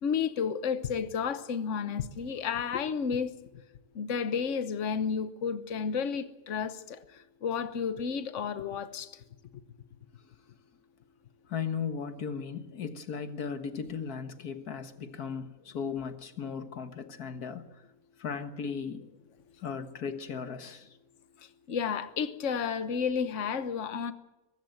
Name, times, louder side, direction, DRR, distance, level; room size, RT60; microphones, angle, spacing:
voice 1, 0.0-3.6 3.9-9.1 21.7-24.1, left 6 dB, 55° left, 1.3 m, -32 dB
voice 2, 11.5-17.7 18.2-19.1 19.6-20.9, left 6 dB, 85° left, 1.9 m, -36 dB
23.0 x 13.5 x 9.1 m
omnidirectional pair, 1.6 m